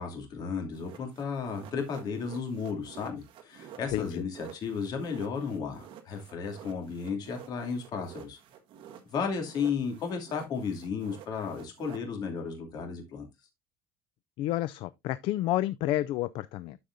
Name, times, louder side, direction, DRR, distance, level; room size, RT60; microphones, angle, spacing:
voice 1, 0.0-8.4 9.1-13.3, left 5 dB, 45° left, 2.6 m, -34 dB
sound 1, 0.7-9.2 9.4-12.0, right 9 dB, 55° right, 1.5 m, -50 dB
voice 2, 3.9-4.2 14.4-16.8, left 15 dB, 60° left, 0.4 m, -30 dB
12.5 x 5.1 x 2.6 m
cardioid pair, 165°, 10 cm